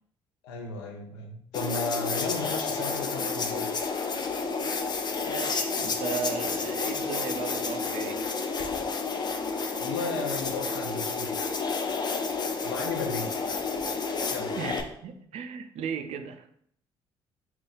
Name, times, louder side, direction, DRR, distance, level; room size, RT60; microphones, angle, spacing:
voice 1, 0.4-3.7 9.8-11.5 12.6-13.4 14.3-14.6, left 3 dB, 75° left, 3 dB, 0.6 m, -35 dB
sound 1, 1.5-14.8, left 4 dB, 30° left, 0.5 m, -30 dB
voice 2, 5.2-8.3 14.5-16.5, right 6 dB, 55° right, 7 dB, 0.4 m, -36 dB
2.8 x 2.3 x 4.0 m, 0.68 s
hypercardioid pair, 50°, 14 cm